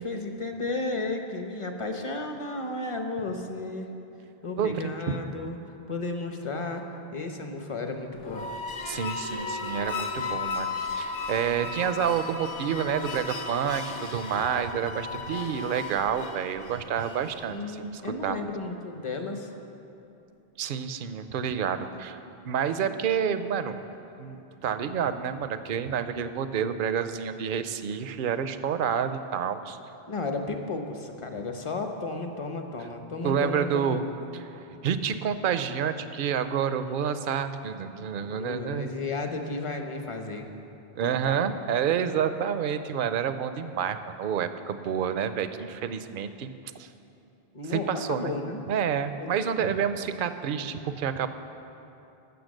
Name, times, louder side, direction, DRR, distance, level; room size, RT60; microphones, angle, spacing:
voice 1, 0.0-3.9 4.4-5.6 5.9-6.8 7.1-8.4 17.5-19.5 30.1-34.0 38.2-40.5 41.0-41.4 47.5-48.6 49.2-49.7, left 3 dB, 35° left, 5 dB, 0.9 m, -33 dB
voice 2, 4.6-4.9 8.9-18.5 20.6-22.2 22.5-23.8 24.2-29.8 33.2-34.0 34.3-34.5 34.8-38.9 41.0-46.5 46.8-46.9 47.7-48.3 48.7-51.3, right 8 dB, 60° right, 11 dB, 0.7 m, -29 dB
sound 1, 8.2-17.6, left 4 dB, 60° left, 0.9 m, -35 dB
14.0 x 6.7 x 6.5 m, 2.8 s
omnidirectional pair, 1.0 m